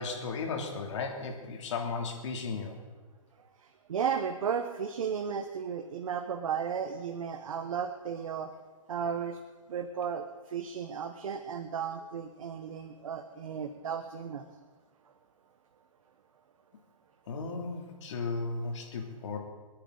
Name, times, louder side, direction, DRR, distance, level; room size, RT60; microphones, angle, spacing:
voice 1, 0.0-2.8 17.3-19.4, left 4 dB, 55° left, 2 dB, 3.1 m, -35 dB
voice 2, 3.9-8.5 8.9-9.4 9.7-14.5, right 7 dB, 70° right, 6 dB, 1.2 m, -34 dB
30.0 x 10.0 x 4.0 m, 1.4 s
hypercardioid pair, 155°, 18 cm